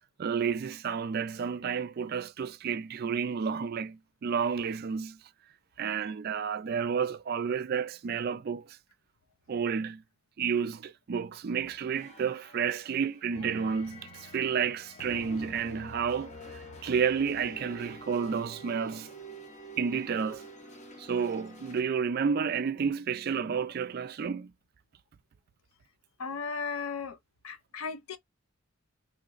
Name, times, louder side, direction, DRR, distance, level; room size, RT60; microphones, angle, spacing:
voice 1, 0.2-5.2 5.8-8.8 9.5-10.0 10.4-16.3 16.8-19.1 19.8-20.4 21.0-24.5, right 6 dB, 45° right, 0.3 m, -31 dB
sound 1, 11.6-21.8, right 1 dB, 35° left, 0.7 m, -47 dB
voice 2, 26.2-27.2 27.4-28.2, left 5 dB, 80° left, 0.6 m, -36 dB
3.1 x 2.9 x 2.4 m
head